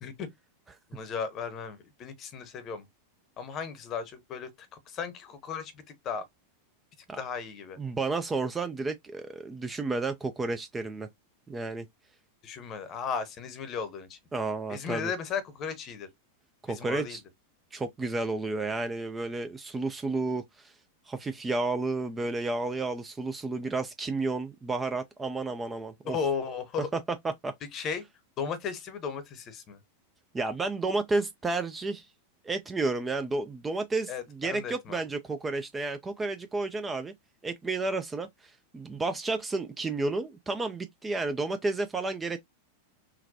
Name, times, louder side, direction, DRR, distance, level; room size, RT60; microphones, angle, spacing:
voice 1, 0.9-2.9 3.4-5.7 6.0-6.2 7.2-7.8 12.4-14.2 14.7-16.1 16.7-17.2 26.0-26.9 27.7-28.0 28.4-29.8 34.1-35.0, left 6 dB, 30° left, 0.8 m, -35 dB
voice 2, 7.8-11.1 11.5-11.9 14.3-15.1 16.6-17.2 17.7-20.7 21.1-26.2 26.8-27.5 30.3-32.1 32.4-37.1 37.4-42.4, right 3 dB, 15° right, 0.4 m, -31 dB
3.8 x 2.1 x 2.7 m
figure-of-eight pair, 90°, 0 cm